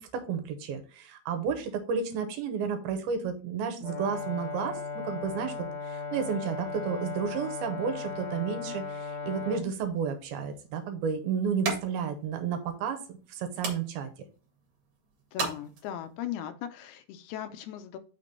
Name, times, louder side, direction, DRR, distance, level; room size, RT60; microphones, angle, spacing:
voice 1, 0.0-14.1, right 6 dB, 80° right, 7 dB, 2.6 m, -32 dB
Brass instrument, 3.8-9.6, left 4 dB, 65° left, 0.4 m, -37 dB
sound 1, 10.0-16.3, right 4 dB, 50° right, 2.4 m, -40 dB
voice 2, 15.3-18.0, left 10 dB, 80° left, 9 dB, 2.6 m, -38 dB
6.0 x 3.7 x 5.4 m, 0.37 s
omnidirectional pair, 4.7 m